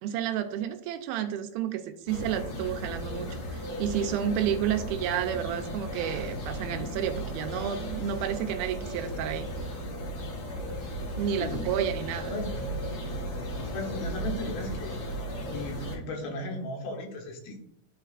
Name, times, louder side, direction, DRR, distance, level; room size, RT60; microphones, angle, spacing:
voice 1, 0.0-9.5 11.2-12.4, right 9 dB, 80° right, 7 dB, 2.4 m, -31 dB
sound 1, 2.1-16.0, equal, 50° left, 1.8 m, -35 dB
voice 2, 11.4-11.7 12.3-12.5 13.7-14.9 15.5-17.6, left 2 dB, 75° left, 0 dB, 3.2 m, -36 dB
11.5 x 4.4 x 2.4 m, 0.74 s
omnidirectional pair, 4.4 m